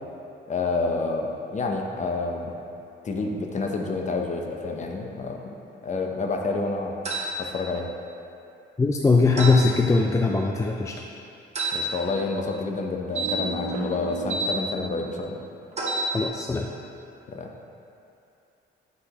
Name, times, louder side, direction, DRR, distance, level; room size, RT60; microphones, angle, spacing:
voice 1, 0.5-2.5 3.0-6.9 7.4-7.9 11.7-15.4 17.3-17.5, left 3 dB, 35° left, 2 dB, 0.7 m, -29 dB
sound 1, 7.0-7.3 9.4-9.6 11.5-11.8 13.1-14.5 15.7-16.1, right 3 dB, 35° right, 1.2 m, -28 dB
voice 2, 8.8-10.9 16.1-16.7, left 3 dB, 15° left, 1 dB, 0.3 m, -21 dB
8.1 x 4.9 x 2.9 m, 2.7 s
cardioid pair, 90°, 20 cm